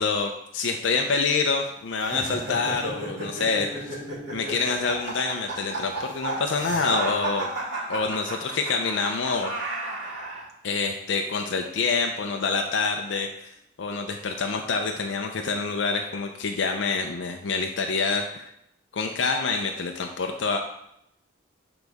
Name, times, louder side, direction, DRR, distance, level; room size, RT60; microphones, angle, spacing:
voice 1, 0.0-4.0 4.3-7.5 7.9-9.5 10.6-18.5 18.9-20.6, left 4 dB, 85° left, 3 dB, 0.5 m, -27 dB
sound 1, 2.0-10.4, right 2 dB, 80° right, 2.3 m, -32 dB
8.0 x 3.9 x 3.5 m, 0.77 s
head